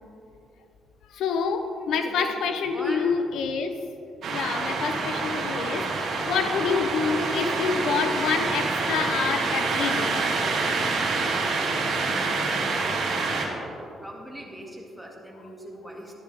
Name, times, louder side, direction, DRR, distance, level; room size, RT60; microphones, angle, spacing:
voice 1, 1.1-3.8 4.3-10.2, left 5 dB, 80° left, 7 dB, 0.6 m, -27 dB
voice 2, 1.9-3.2 14.0-16.1, equal, ahead, -2 dB, 2.0 m, -40 dB
sound 1, 4.2-13.5, right 3 dB, 65° right, 1.9 m, -27 dB
13.0 x 10.5 x 3.4 m, 2.9 s
cardioid pair, 90°, 0 cm